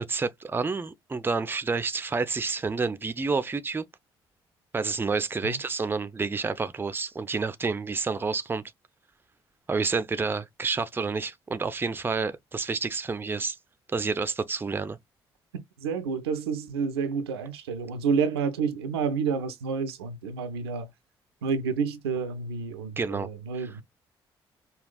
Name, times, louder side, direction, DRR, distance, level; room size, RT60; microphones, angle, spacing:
voice 1, 0.0-3.8 4.7-8.6 9.7-13.6 13.9-15.0 23.0-23.3 23.6-23.7, right 4 dB, 15° right, 0.5 m, -29 dB
voice 2, 15.8-20.9 21.4-23.8, right 5 dB, 75° right, 0.5 m, -29 dB
5.2 x 2.3 x 2.3 m
figure-of-eight pair, 45°, 13 cm